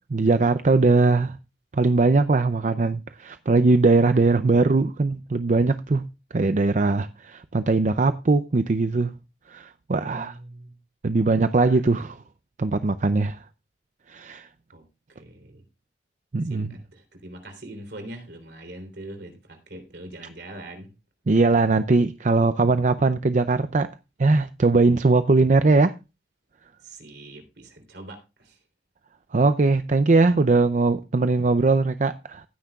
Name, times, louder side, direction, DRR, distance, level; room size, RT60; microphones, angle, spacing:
voice 1, 0.1-1.4 1.7-6.1 6.3-9.1 9.5-10.3 11.0-12.2 12.6-13.4 14.1-14.5 16.3-16.7 21.3-23.9 24.2-25.9 29.3-32.4, right 3 dB, 45° right, 0.5 m, -20 dB
voice 2, 9.9-10.8 11.6-11.8 14.7-15.6 16.4-20.9 26.8-28.6, right 1 dB, 65° right, 3.4 m, -42 dB
16.5 x 9.6 x 2.4 m
head